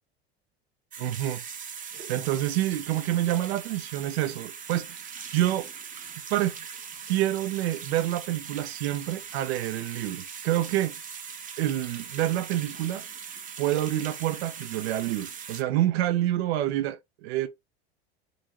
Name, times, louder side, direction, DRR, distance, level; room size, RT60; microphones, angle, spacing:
sound 1, 0.9-15.6, right 7 dB, 25° right, 0.7 m, -41 dB
voice 1, 1.0-1.4 1.9-5.7 6.3-6.6 7.1-11.2 11.6-13.0 13.6-17.5, right 13 dB, 70° right, 0.6 m, -28 dB
3.8 x 2.7 x 2.9 m
hypercardioid pair, 90°, 32 cm